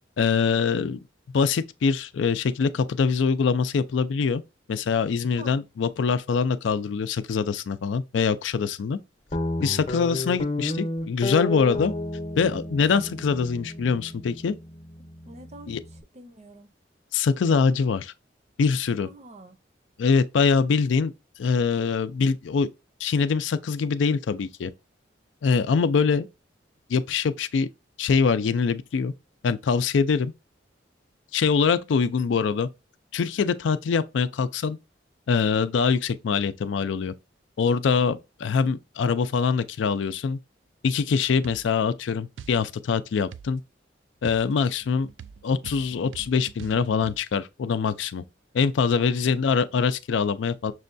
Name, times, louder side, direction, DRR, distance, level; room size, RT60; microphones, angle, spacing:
voice 1, 0.2-1.0 1.3-4.4 4.7-9.0 9.6-11.9 12.4-14.6 15.7-15.8 17.1-18.1 18.6-19.1 20.0-21.1 21.4-22.7 23.0-24.7 25.4-26.3 26.9-27.7 28.0-29.1 29.4-30.3 31.3-32.7 33.1-34.8 35.3-37.1 37.6-40.4 40.8-43.6 44.2-45.1 45.4-48.2 48.5-50.7, left 5 dB, 80° left, 0.4 m, -24 dB
Guitar, 9.3-16.0, left 1 dB, 35° left, 0.7 m, -32 dB
voice 2, 15.3-15.8 16.1-16.7 19.0-19.6 49.0-49.4, right 2 dB, 35° right, 0.6 m, -46 dB
sound 1, 41.4-41.7 42.4-42.6 43.3-43.5 44.2-47.2, right 7 dB, 90° right, 0.3 m, -43 dB
6.1 x 2.2 x 2.5 m
head